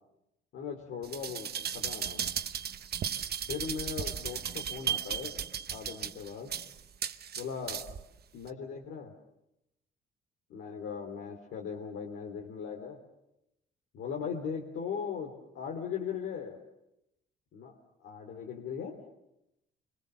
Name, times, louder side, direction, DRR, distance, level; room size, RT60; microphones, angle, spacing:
voice 1, 0.5-2.2 3.5-5.4 5.7-6.5 7.4-7.8 8.3-9.1 10.5-13.0 13.9-16.6 17.5-17.8 18.0-19.0, left 6 dB, 80° left, 1 dB, 3.4 m, -38 dB
sound 1, 1.0-8.0 8.5-8.6, right 8 dB, 55° right, 1.1 m, -35 dB
29.5 x 25.5 x 7.0 m, 0.87 s
cardioid pair, 90°, 20 cm